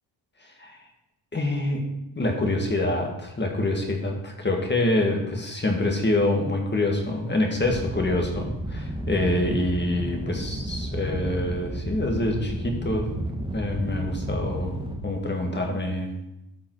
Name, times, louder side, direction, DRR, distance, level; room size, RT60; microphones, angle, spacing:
voice 1, 1.3-1.9 2.2-13.1 13.5-16.1, left 1 dB, 20° left, 2 dB, 1.8 m, -26 dB
sound 1, 7.6-15.0, right 1 dB, 10° right, 1.1 m, -32 dB
12.5 x 5.5 x 4.7 m, 0.89 s
wide cardioid pair, 120°, 48 cm